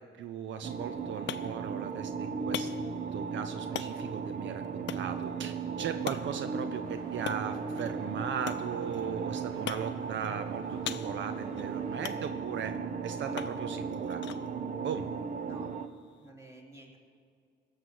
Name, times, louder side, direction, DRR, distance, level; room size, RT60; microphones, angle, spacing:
voice 1, 0.0-2.7 3.1-12.7 13.0-14.2 14.8-15.1, right 8 dB, 70° right, 9 dB, 0.7 m, -38 dB
sound 1, 0.6-15.9, right 5 dB, 40° right, 0.8 m, -36 dB
sound 2, 0.7-16.3, left 11 dB, 65° left, 0.6 m, -45 dB
sound 3, 6.8-12.2, right 3 dB, 90° right, 1.9 m, -54 dB
voice 2, 15.4-15.7 16.2-17.0, right 2 dB, 15° right, -1 dB, 3.0 m, -51 dB
17.0 x 6.6 x 7.8 m, 2.2 s
cardioid pair, 90°, 20 cm